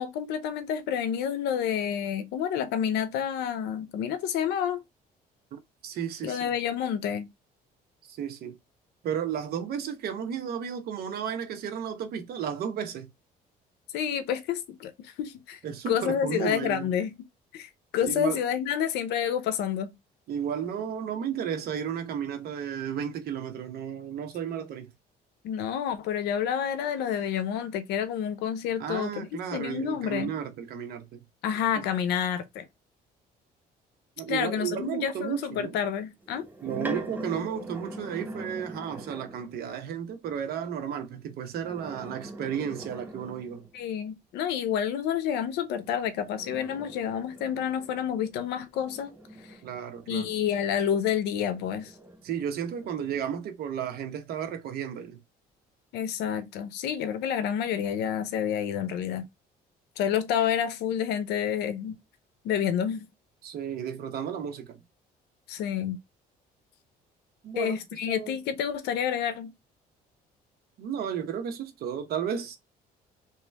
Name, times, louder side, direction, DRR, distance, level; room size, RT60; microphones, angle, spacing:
voice 1, 0.0-4.8 6.2-7.3 13.9-15.6 15.9-17.1 17.5-19.9 25.4-30.3 31.4-32.7 34.3-36.5 43.7-49.1 49.5-49.6 50.1-51.9 55.9-59.3 60.0-62.0 62.4-63.1 65.5-66.0 67.6-69.5, left 9 dB, 85° left, 0.7 m, -29 dB
voice 2, 5.5-6.5 8.1-8.5 9.0-13.1 15.6-16.9 18.0-18.4 20.3-24.9 28.8-31.2 31.8-31.9 34.2-35.8 36.6-43.7 49.6-50.3 52.2-55.2 63.4-64.8 67.4-68.4 70.8-72.6, right 8 dB, 65° right, 0.9 m, -33 dB
sound 1, 36.2-39.6 41.5-43.8 45.8-51.0 51.5-53.3, right 1 dB, 10° right, 0.6 m, -43 dB
3.2 x 3.0 x 3.4 m
cardioid pair, 110°, 17 cm